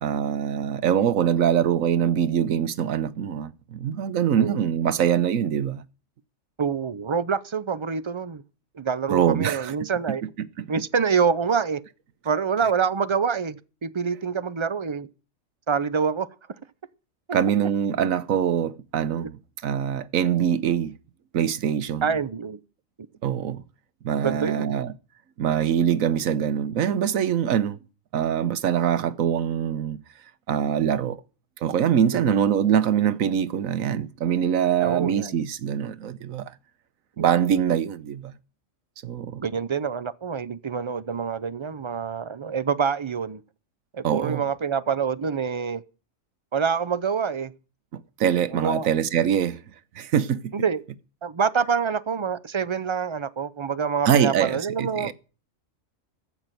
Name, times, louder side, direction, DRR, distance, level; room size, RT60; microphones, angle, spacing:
voice 1, 0.0-5.8 9.1-9.7 10.6-10.7 17.3-20.9 21.3-22.1 23.2-23.6 24.0-24.9 25.4-27.8 28.1-30.0 30.5-31.2 31.6-36.5 37.2-38.3 39.0-39.4 44.0-44.4 48.2-49.6 49.9-50.4 54.1-55.1, right 8 dB, 80° right, 1.3 m, -23 dB
voice 2, 6.6-8.4 8.7-10.2 10.7-11.8 12.2-15.1 15.7-16.3 19.2-19.3 22.0-22.6 24.2-24.8 32.1-32.4 34.8-35.4 37.2-37.3 39.4-43.4 43.9-45.8 46.5-47.5 48.5-48.9 50.5-50.8 51.2-55.1, right 6 dB, 35° right, 0.4 m, -26 dB
15.0 x 6.1 x 9.1 m
omnidirectional pair, 1.4 m